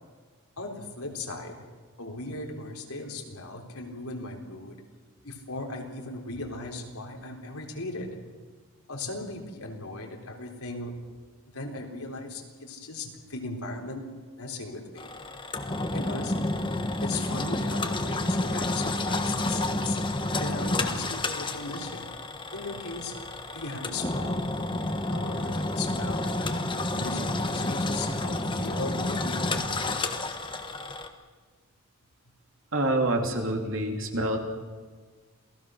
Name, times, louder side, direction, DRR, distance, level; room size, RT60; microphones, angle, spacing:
voice 1, 0.6-1.6 2.0-4.8 5.2-8.2 8.9-10.9 11.5-14.1 14.4-15.1 15.9-16.6 17.0-22.1 22.5-24.5 25.1-26.6 26.9-30.1, left 2 dB, 80° left, 1 dB, 3.9 m, -38 dB
Engine, 15.0-31.1, left 2 dB, 20° left, 1.4 m, -30 dB
voice 2, 32.7-34.4, right 1 dB, 60° right, 2 dB, 3.2 m, -26 dB
28.0 x 18.5 x 6.5 m, 1.5 s
head